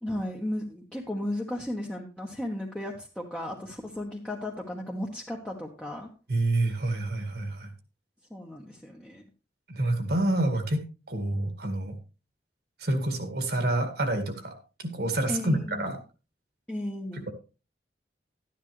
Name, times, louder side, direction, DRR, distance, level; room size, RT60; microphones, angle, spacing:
voice 1, 0.0-6.1 8.3-9.3 15.3-16.0 16.7-17.3, left 1 dB, 5° left, -2 dB, 1.2 m, -35 dB
voice 2, 6.3-7.7 9.7-10.8 11.1-11.9 12.8-14.6 14.9-16.0, right 1 dB, 60° right, 6 dB, 2.0 m, -27 dB
12.5 x 10.0 x 3.2 m, 0.33 s
head